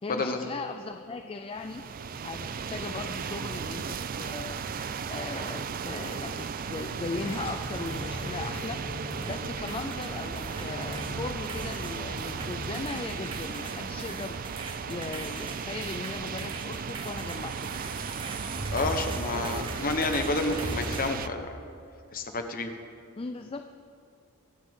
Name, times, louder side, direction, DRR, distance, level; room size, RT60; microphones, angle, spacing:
voice 1, 0.0-1.9 2.2-4.6 5.1-8.9 9.2-14.4 14.9-17.8 23.2-23.7, left 3 dB, 25° left, 7 dB, 0.4 m, -38 dB
sound 1, 1.5-21.3, right 6 dB, 40° right, 0.4 m, -36 dB
sound 2, 4.2-5.7 6.0-6.9 7.2-9.4 9.7-21.1, right 2 dB, 25° right, 0.9 m, -40 dB
sound 3, 7.0-12.9, left 1 dB, 75° left, 3.4 m, -41 dB
voice 2, 18.7-21.5 22.1-22.7, left 2 dB, 40° left, 6 dB, 1.1 m, -29 dB
24.0 x 9.1 x 3.7 m, 2.4 s
head